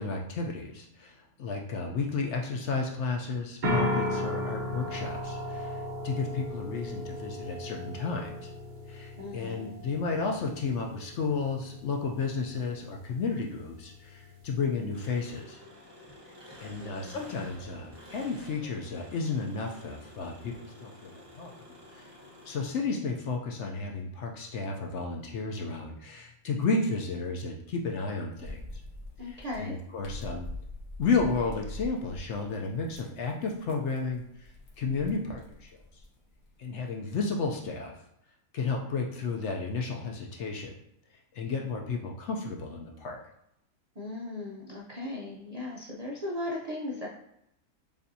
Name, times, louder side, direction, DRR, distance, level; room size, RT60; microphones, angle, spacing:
voice 1, 0.0-8.5 8.9-15.6 16.6-21.5 21.9-22.1 22.4-28.8 29.2-30.5 31.0-34.5 34.8-36.0 36.6-38.0 38.5-40.8 41.3-43.2, left 4 dB, 65° left, 1 dB, 0.7 m, -32 dB
sound 1, 3.6-15.4, left 1 dB, 40° right, 0.8 m, -36 dB
voice 2, 9.2-9.8 16.8-17.2 29.2-29.7 44.0-47.1, left 2 dB, 60° right, -3 dB, 0.4 m, -37 dB
Engine, 14.9-23.1, left 1 dB, 20° right, 1.1 m, -50 dB
sound 2, 28.4-37.6, left 1 dB, 90° left, 1.5 m, -44 dB
7.0 x 2.6 x 2.6 m, 0.80 s
omnidirectional pair, 1.5 m